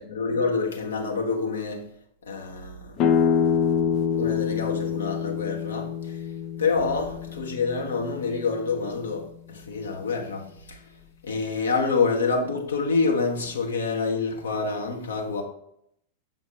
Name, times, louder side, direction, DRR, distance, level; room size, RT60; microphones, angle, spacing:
voice 1, 0.0-1.8 2.2-3.0 4.1-6.2 6.6-10.8 11.2-15.4, left 4 dB, 70° left, 1.3 m, -27 dB
sound 1, 3.0-8.6, left 7 dB, 40° left, 0.5 m, -26 dB
7.2 x 3.9 x 5.1 m
figure-of-eight pair, 90°, 0 cm